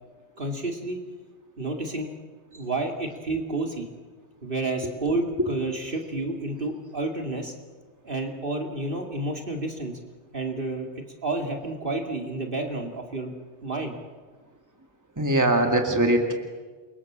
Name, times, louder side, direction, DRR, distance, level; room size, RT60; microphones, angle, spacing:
voice 1, 0.4-1.0 1.6-2.1 2.5-3.9 4.4-7.5 8.0-10.0 10.3-10.9 11.2-13.3 13.6-13.9, right 2 dB, 50° right, 2 dB, 2.7 m, -30 dB
voice 2, 15.2-16.3, right 1 dB, 15° right, 3 dB, 2.4 m, -21 dB
28.5 x 23.5 x 7.5 m, 1.5 s
omnidirectional pair, 1.2 m